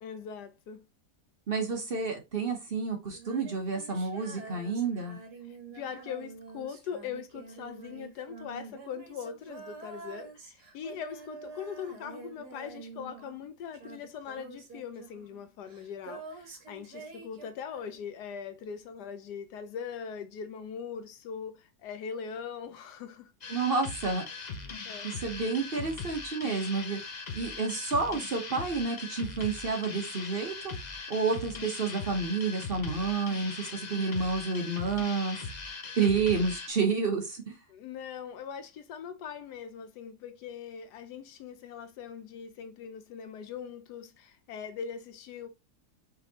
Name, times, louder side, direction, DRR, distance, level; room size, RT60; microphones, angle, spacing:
voice 1, 0.0-0.8 5.4-23.3 24.8-25.1 37.7-45.5, left 7 dB, 80° left, 1.2 m, -41 dB
voice 2, 1.5-5.2 23.5-24.3 25.0-27.0 27.3-30.7 31.1-35.4 36.0-37.6, right 4 dB, 45° right, 0.9 m, -30 dB
Female singing, 3.1-13.5 13.7-18.2, right 4 dB, 70° right, 1.8 m, -47 dB
sound 1, 23.4-36.7, left 4 dB, 60° left, 0.4 m, -40 dB
5.1 x 3.1 x 2.8 m
omnidirectional pair, 1.7 m